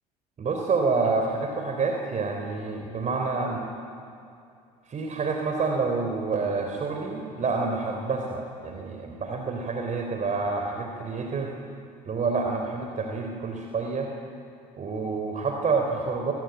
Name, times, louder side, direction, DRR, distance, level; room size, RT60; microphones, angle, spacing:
voice 1, 0.4-3.6 4.9-11.5 12.1-14.1 14.8-16.3, right 4 dB, 40° right, 3 dB, 3.6 m, -28 dB
25.0 x 20.5 x 9.1 m, 2.4 s
hypercardioid pair, 65°, 20 cm